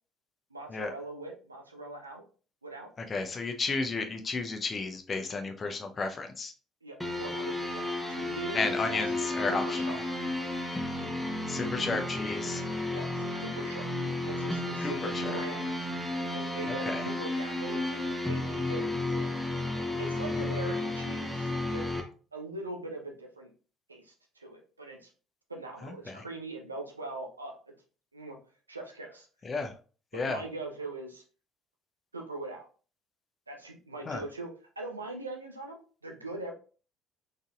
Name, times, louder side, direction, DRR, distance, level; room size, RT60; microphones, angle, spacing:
voice 1, 0.5-2.2 2.6-2.9 6.8-10.0 12.9-13.9 14.2-15.8 16.3-19.4 20.0-21.8 22.3-23.5 23.9-25.1 25.5-27.7 28.1-28.4 28.7-29.3 30.1-31.2 32.1-32.7 33.5-36.5, right 2 dB, 90° right, 1 dB, 0.6 m, -41 dB
voice 2, 3.1-6.5 8.5-10.0 11.5-12.6 14.8-15.4 16.7-17.0 20.3-20.5 25.8-26.2 29.4-29.7 30.1-30.4 34.1-34.2, left 3 dB, 35° left, 6 dB, 0.7 m, -33 dB
sound 1, 7.0-22.0, left 2 dB, ahead, 1.0 m, -33 dB
4.0 x 3.7 x 2.5 m, 0.38 s
figure-of-eight pair, 55°, 0 cm